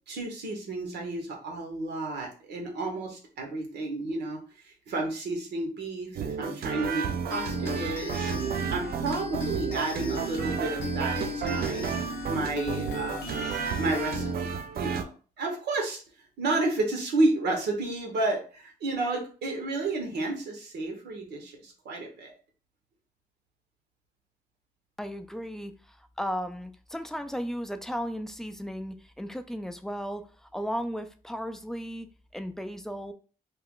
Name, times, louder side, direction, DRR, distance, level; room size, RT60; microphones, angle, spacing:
voice 1, 0.1-8.3 8.7-11.8 12.3-13.5 13.8-16.0 16.4-22.3, right 2 dB, 80° right, 1 dB, 0.9 m, -31 dB
sound 1, 6.2-15.0, right 7 dB, 60° right, 0.4 m, -32 dB
sound 2, 7.3-14.3, left 4 dB, 90° left, 0.6 m, -37 dB
voice 2, 25.0-33.1, equal, 5° left, 8 dB, 0.4 m, -35 dB
2.3 x 2.2 x 3.6 m, 0.38 s
supercardioid pair, 55°, 17 cm